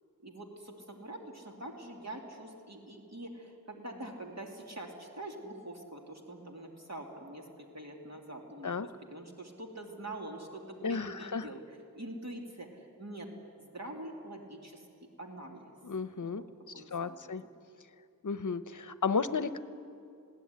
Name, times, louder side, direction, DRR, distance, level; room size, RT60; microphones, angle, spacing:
voice 1, 0.2-11.6 11.9-13.3 13.6-14.9 15.2-15.7 16.2-16.4 16.7-17.5, right 1 dB, 45° right, 1 dB, 2.7 m, -45 dB
voice 2, 10.8-11.5 15.8-16.4 16.8-17.4 18.2-19.6, left 5 dB, 55° left, 13 dB, 0.8 m, -33 dB
21.0 x 16.5 x 9.6 m, 2.5 s
wide cardioid pair, 75°, 36 cm